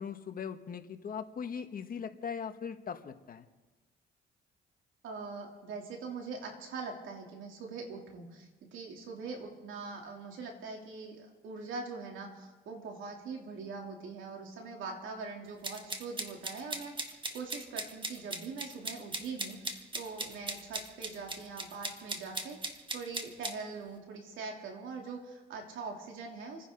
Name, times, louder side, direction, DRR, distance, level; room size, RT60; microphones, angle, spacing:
voice 1, 0.0-3.4, left 6 dB, 45° left, 7 dB, 1.3 m, -40 dB
voice 2, 5.0-26.7, right 4 dB, 80° right, 1 dB, 3.1 m, -42 dB
sound 1, 15.6-23.5, right 2 dB, 25° right, 1.6 m, -38 dB
29.0 x 10.0 x 3.9 m, 1.2 s
cardioid pair, 90°, 20 cm